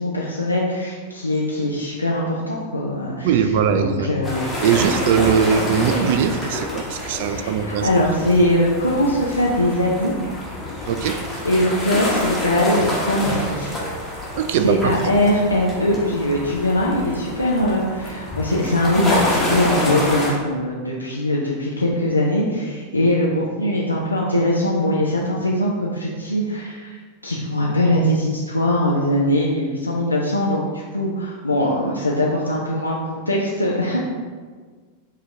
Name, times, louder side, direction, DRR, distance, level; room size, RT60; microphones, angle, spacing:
voice 1, 0.0-4.5 4.8-4.9 7.3-10.1 11.5-13.7 14.6-34.1, left 1 dB, 85° left, -4 dB, 0.5 m, -21 dB
voice 2, 3.2-4.1 4.6-7.9 10.9-11.2 14.3-15.2, right 7 dB, 50° right, 9 dB, 0.3 m, -20 dB
sound 1, 4.2-20.3, left 1 dB, 10° left, 1.2 m, -27 dB
4.7 x 2.9 x 3.7 m, 1.5 s
figure-of-eight pair, 90°, 0 cm